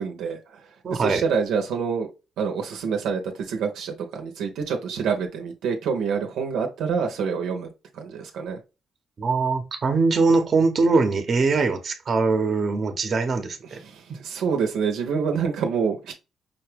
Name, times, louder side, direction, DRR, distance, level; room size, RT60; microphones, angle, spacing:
voice 1, 0.0-2.1 2.4-8.6 13.6-16.1, right 6 dB, 85° right, 0.8 m, -27 dB
voice 2, 0.8-1.2 9.2-13.8 14.1-14.2, right 4 dB, 45° right, 0.9 m, -22 dB
5.5 x 2.3 x 3.3 m
cardioid pair, 90°, 0 cm